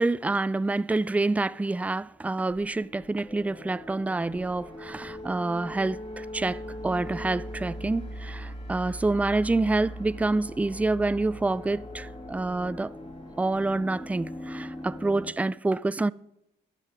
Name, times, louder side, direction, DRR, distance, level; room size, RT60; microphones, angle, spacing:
voice 1, 0.0-12.9 13.4-16.1, right 2 dB, 5° right, 0.3 m, -27 dB
sound 1, 2.5-15.3, equal, 25° left, 1.9 m, -40 dB
22.5 x 8.4 x 3.4 m
cardioid pair, 90°, 20 cm